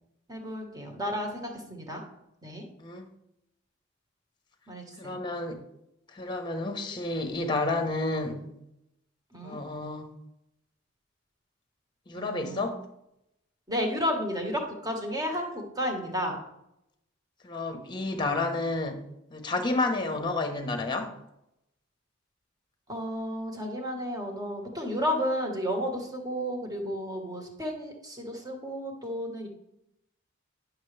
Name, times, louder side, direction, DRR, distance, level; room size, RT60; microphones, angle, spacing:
voice 1, 0.3-2.0 2.4-2.6 4.7-5.2 9.3-9.6 12.1-12.7 13.7-16.4 22.9-29.5, equal, 20° right, 1 dB, 1.5 m, -32 dB
voice 2, 5.0-5.6 6.1-8.5 9.4-10.1 12.1-12.8 17.4-19.0 19.3-21.1, left 2 dB, 25° left, 6 dB, 1.1 m, -30 dB
10.0 x 6.3 x 3.3 m, 0.83 s
head